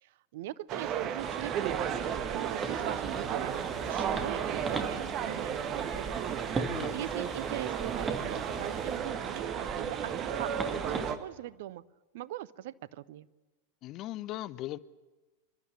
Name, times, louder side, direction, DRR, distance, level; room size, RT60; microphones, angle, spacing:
voice 1, 0.0-1.8 2.3-3.5 3.8-6.3 6.9-11.8 12.1-13.3, right 14 dB, 55° right, 19 dB, 0.6 m, -41 dB
sound 1, 0.7-11.2, right 9 dB, 35° right, 1.2 m, -34 dB
sound 2, 1.2-11.1, right 3 dB, 20° right, 2.2 m, -39 dB
sound 3, 2.1-9.1, left 3 dB, 15° left, 7.4 m, -53 dB
voice 2, 6.7-7.0 13.8-14.8, left 15 dB, 40° left, 18 dB, 0.6 m, -38 dB
28.0 x 12.5 x 9.7 m, 1.2 s
figure-of-eight pair, 90°, 0 cm